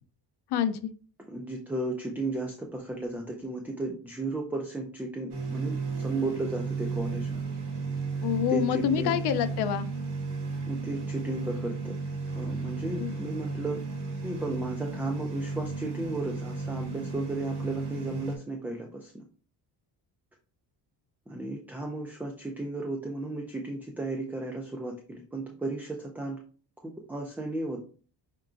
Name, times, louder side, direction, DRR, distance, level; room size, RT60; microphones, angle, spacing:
voice 1, 0.5-0.9 8.2-9.9 13.0-13.1, left 9 dB, 65° left, 9 dB, 0.6 m, -27 dB
voice 2, 1.3-7.4 8.5-9.1 10.7-11.9 12.3-13.8 14.2-19.2 21.3-26.4 26.8-27.8, right 2 dB, 5° right, 2 dB, 0.3 m, -34 dB
sound 1, 5.3-18.3, right 4 dB, 75° right, 2.3 m, -34 dB
5.6 x 3.7 x 2.5 m, 0.39 s
cardioid pair, 165°, 41 cm